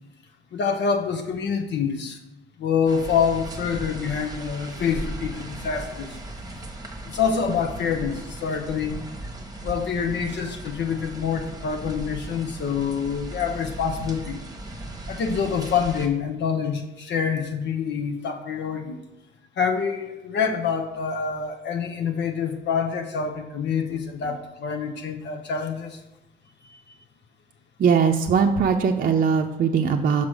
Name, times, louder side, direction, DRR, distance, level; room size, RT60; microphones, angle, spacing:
voice 1, 0.5-2.2 2.6-6.2 7.0-8.9 9.6-14.4 15.1-19.0 19.6-26.0 26.6-26.8, left 6 dB, 65° left, 4 dB, 0.8 m, -26 dB
sound 1, 2.9-16.1, right 2 dB, 20° right, 1.2 m, -37 dB
voice 2, 27.8-30.3, right 6 dB, 45° right, 3 dB, 0.6 m, -20 dB
6.1 x 5.7 x 4.9 m, 0.94 s
cardioid pair, 90°, 20 cm